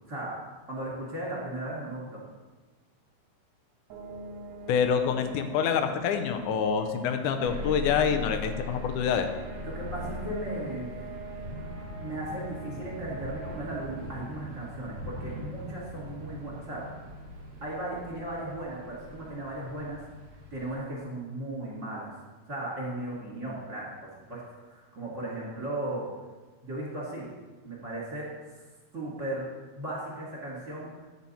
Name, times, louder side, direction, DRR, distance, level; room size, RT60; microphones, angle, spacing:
voice 1, 0.7-2.2 9.6-11.2 12.0-16.9 17.6-20.0 20.5-22.1 22.5-26.1 26.6-27.3 27.6-28.6 28.9-29.4 29.7-30.9, right 1 dB, 25° right, -6 dB, 2.8 m, -36 dB
sound 1, 3.9-18.5, right 2 dB, 70° right, 1.9 m, -45 dB
voice 2, 4.7-9.3, left 7 dB, 75° left, 8 dB, 2.1 m, -26 dB
sound 2, 7.4-20.8, left 1 dB, 45° right, 2.2 m, -41 dB
10.5 x 8.0 x 4.2 m, 1.3 s
omnidirectional pair, 3.8 m